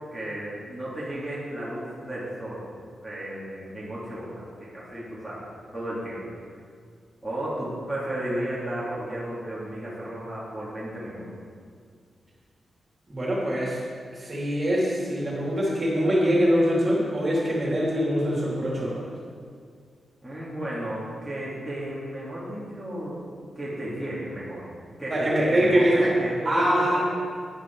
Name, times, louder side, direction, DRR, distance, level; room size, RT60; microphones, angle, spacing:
voice 1, 0.0-2.7 3.0-6.2 7.2-11.3 20.2-23.2 23.6-24.6 25.0-27.0, right 1 dB, ahead, -10 dB, 2.4 m, -33 dB
voice 2, 13.1-13.8 14.2-19.0 25.1-25.9 26.4-27.0, equal, 25° right, -5 dB, 3.1 m, -23 dB
13.0 x 10.5 x 4.6 m, 2.1 s
wide cardioid pair, 175°, 0 cm